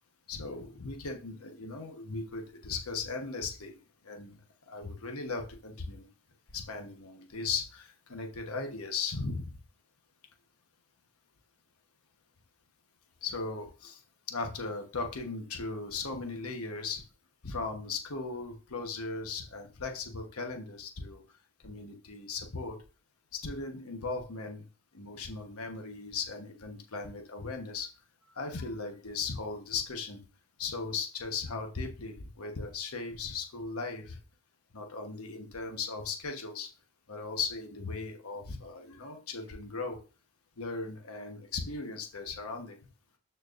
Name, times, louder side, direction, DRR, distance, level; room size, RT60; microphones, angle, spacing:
voice 1, 0.3-3.8 4.0-4.4 4.7-6.1 6.5-9.6 13.2-14.0 14.3-17.0 17.4-21.2 21.6-22.8 23.3-24.6 24.9-27.9 28.3-30.2 30.6-34.2 34.7-36.7 37.1-40.0 40.6-42.8, left 4 dB, 85° left, 3 dB, 1.1 m, -37 dB
13.0 x 4.5 x 2.5 m, 0.34 s
head